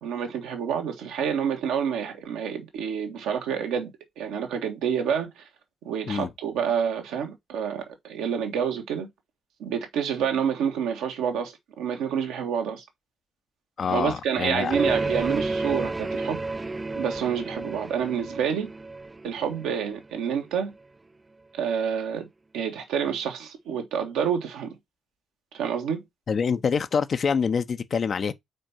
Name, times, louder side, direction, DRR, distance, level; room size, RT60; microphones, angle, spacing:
voice 1, 0.0-3.9 4.2-5.4 5.8-9.1 9.6-12.8 13.9-16.4 17.0-18.7 19.2-20.7 21.5-22.3 22.5-24.8 25.5-26.0, right 7 dB, 70° right, 1.6 m, -28 dB
voice 2, 13.8-14.7 26.3-28.3, left 6 dB, 45° left, 0.8 m, -26 dB
sound 1, 14.7-20.3, right 3 dB, 20° right, 0.5 m, -31 dB
5.2 x 4.4 x 5.7 m
hypercardioid pair, 45°, 0 cm